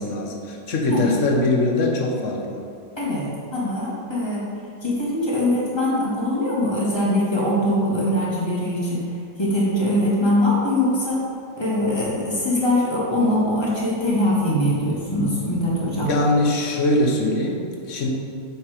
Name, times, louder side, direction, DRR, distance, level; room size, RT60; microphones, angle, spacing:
voice 1, 0.0-2.6 16.1-18.1, left 2 dB, 55° left, 0 dB, 1.2 m, -22 dB
voice 2, 3.0-4.4 4.8-9.0 9.4-11.2 11.6-16.1, left 1 dB, 15° left, -7 dB, 1.7 m, -22 dB
7.1 x 5.0 x 4.9 m, 2.4 s
omnidirectional pair, 1.8 m